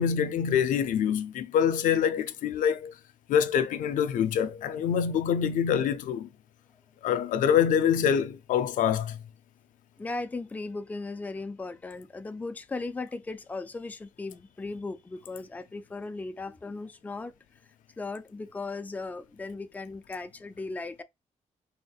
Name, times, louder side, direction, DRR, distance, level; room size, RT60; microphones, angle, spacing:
voice 1, 0.0-2.9 3.3-6.3 7.0-9.2, left 8 dB, 90° left, 0.4 m, -25 dB
voice 2, 10.0-17.3 18.0-21.0, left 3 dB, 10° left, 0.3 m, -37 dB
4.2 x 3.4 x 2.4 m
cardioid pair, 115°, 13 cm